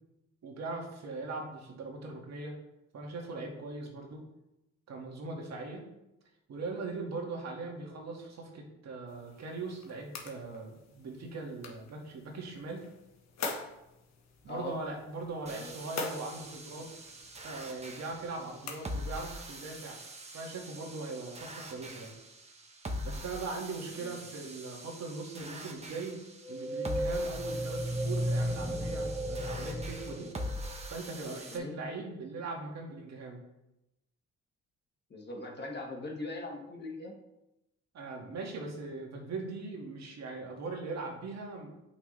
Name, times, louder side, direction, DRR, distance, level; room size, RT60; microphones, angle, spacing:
voice 1, 0.4-2.5 2.9-4.2 4.9-5.8 6.5-12.8 14.4-16.8 17.4-20.0 20.3-22.1 23.0-26.2 26.5-30.3 30.9-33.4 37.9-41.7, right 3 dB, 60° right, 0 dB, 2.0 m, -40 dB
sound 1, 9.1-19.3, left 3 dB, 60° left, 1.4 m, -45 dB
sound 2, 15.5-31.6, equal, 20° right, 1.3 m, -43 dB
sound 3, 26.4-31.1, equal, ahead, 0.6 m, -34 dB
voice 2, 35.1-37.1, left 2 dB, 35° left, 1 dB, 1.7 m, -41 dB
8.5 x 5.7 x 3.3 m, 0.91 s
cardioid pair, 90°, 30 cm